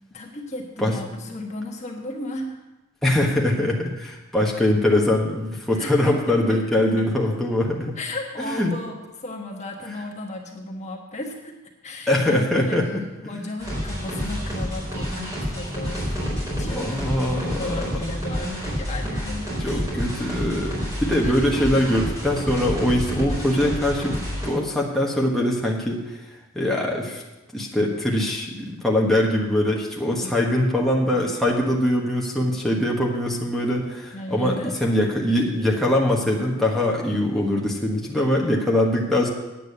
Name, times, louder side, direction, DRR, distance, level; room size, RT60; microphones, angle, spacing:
voice 1, 0.1-2.6 5.8-6.4 8.0-11.6 11.8-12.8 13.2-16.1 16.5-19.8 21.2-21.5 30.2-30.3 34.1-34.7, left 1 dB, 35° left, 1 dB, 1.3 m, -34 dB
voice 2, 3.0-7.9 8.4-8.7 12.1-13.0 16.7-17.9 19.6-26.2 26.5-27.2 27.5-34.6 34.8-39.3, left 1 dB, ahead, -3 dB, 1.3 m, -22 dB
sound 1, 13.6-24.5, equal, 15° right, 4.2 m, -29 dB
9.2 x 8.5 x 6.8 m, 1.1 s
head